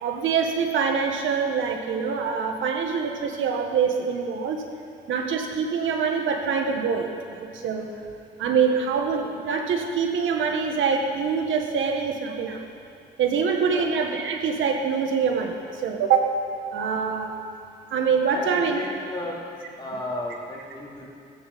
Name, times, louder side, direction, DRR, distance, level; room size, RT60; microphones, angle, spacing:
voice 1, 0.0-4.6 5.1-7.9 8.4-12.6 13.2-16.3 16.7-17.3 17.9-18.8, right 6 dB, 75° right, 3 dB, 1.6 m, -25 dB
voice 2, 18.3-19.4 19.8-21.1, left 1 dB, 25° left, -4 dB, 3.5 m, -33 dB
15.5 x 14.0 x 4.2 m, 2.4 s
cardioid pair, 90°, 20 cm